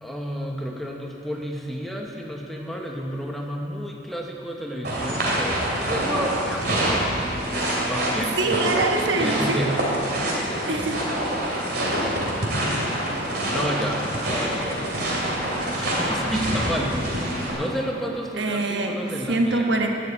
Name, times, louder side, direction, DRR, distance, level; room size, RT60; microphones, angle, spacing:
voice 1, 0.0-7.0 7.9-8.6 9.1-9.8 10.3-10.8 13.5-14.0 14.3-14.9 15.7-19.7, equal, ahead, 0 dB, 0.9 m, -31 dB
sound 1, 4.8-17.5, right 1 dB, 55° right, 2.8 m, -26 dB
voice 2, 8.4-9.7 10.7-11.0 18.4-19.0 19.3-19.9, right 2 dB, 75° right, 2 dB, 1.2 m, -24 dB
11.5 x 7.5 x 8.6 m, 3.0 s
head